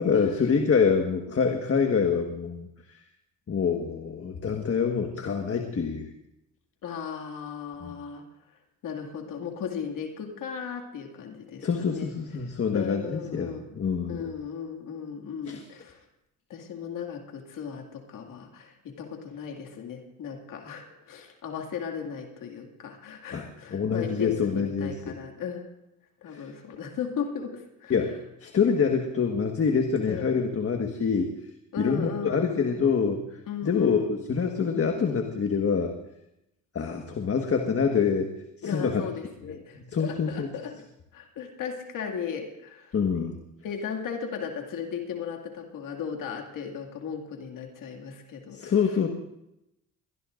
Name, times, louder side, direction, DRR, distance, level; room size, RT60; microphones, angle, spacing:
voice 1, 0.0-2.7 3.5-6.1 7.8-7.9 11.6-14.3 15.5-15.6 23.3-25.2 26.3-26.5 27.9-31.3 31.8-33.2 33.6-35.9 36.7-38.4 38.6-39.0 39.5-40.5 42.9-43.4 48.5-49.1, left 6 dB, 40° left, 4 dB, 1.6 m, -26 dB
voice 2, 6.8-8.2 8.8-12.1 12.4-13.7 14.1-16.0 16.5-25.7 26.2-28.0 30.1-30.3 31.7-32.5 33.5-34.1 38.6-40.8 41.1-42.9 43.6-48.7, left 7 dB, 70° left, 3 dB, 2.3 m, -36 dB
22.5 x 19.0 x 2.6 m, 0.86 s
supercardioid pair, 75°, 34 cm